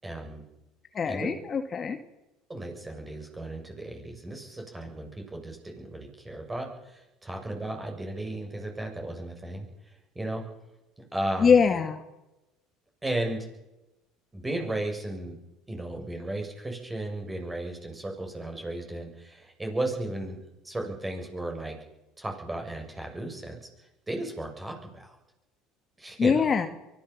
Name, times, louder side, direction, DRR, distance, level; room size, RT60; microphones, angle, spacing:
voice 1, 0.0-0.4 1.1-1.3 2.5-9.7 10.2-10.4 11.1-11.6 13.0-13.5 14.3-15.4 15.7-21.8 22.2-23.6 24.1-25.2 26.0-26.5, right 1 dB, 15° right, 2 dB, 7.1 m, -35 dB
voice 2, 0.9-2.0 11.4-12.0 26.2-26.7, left 6 dB, 35° left, 7 dB, 1.9 m, -23 dB
23.5 x 15.5 x 7.4 m, 0.96 s
hypercardioid pair, 75°, 0 cm